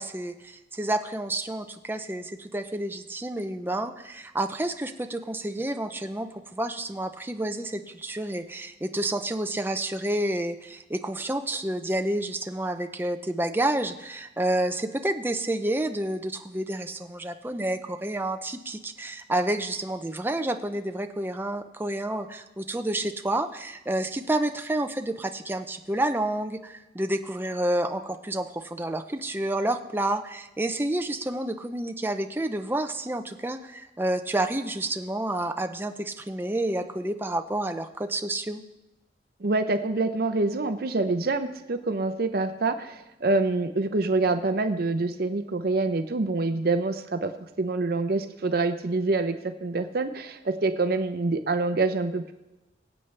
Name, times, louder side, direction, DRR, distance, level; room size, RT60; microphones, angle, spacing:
voice 1, 0.0-38.6, right 1 dB, 10° right, 6 dB, 0.5 m, -29 dB
voice 2, 39.4-47.3 47.6-52.3, right 3 dB, 55° right, 8 dB, 0.6 m, -26 dB
23.0 x 8.2 x 3.3 m, 0.99 s
head